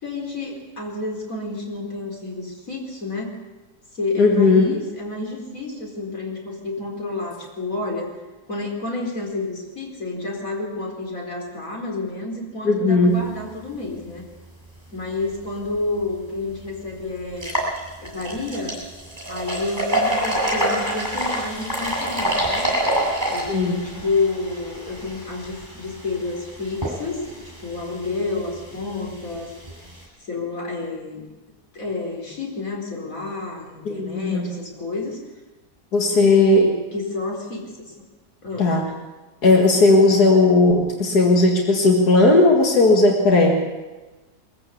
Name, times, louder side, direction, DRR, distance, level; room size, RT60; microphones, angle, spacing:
voice 1, 0.0-3.3 3.9-8.1 8.5-14.2 14.9-17.6 18.0-18.8 19.3-22.7 23.3-29.5 30.2-31.2 31.7-35.2 36.1-37.9 38.4-38.8, left 3 dB, 55° left, -1 dB, 4.7 m, -29 dB
voice 2, 4.2-4.7 12.7-13.2 23.5-23.9 33.9-34.5 35.9-36.7 38.6-38.8 39.4-43.6, left 2 dB, 80° left, 1 dB, 2.4 m, -16 dB
sound 1, 16.0-16.1 16.6-16.7 17.3-30.0, equal, 15° right, 7.0 m, -27 dB
22.5 x 15.0 x 8.5 m, 1.2 s
omnidirectional pair, 1.6 m